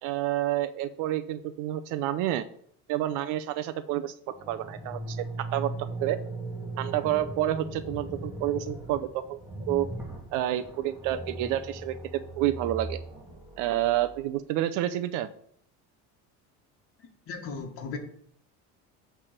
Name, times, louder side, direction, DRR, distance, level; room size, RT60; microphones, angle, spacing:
voice 1, 0.0-2.5 2.9-6.2 6.8-9.4 9.7-9.9 10.3-13.0 13.6-15.3, right 13 dB, 70° right, 0.6 m, -29 dB
sound 1, 4.3-14.2, right 2 dB, 5° right, 1.6 m, -39 dB
voice 2, 17.3-18.0, left 4 dB, 45° left, 1.6 m, -36 dB
8.5 x 3.4 x 6.7 m
cardioid pair, 150°, 32 cm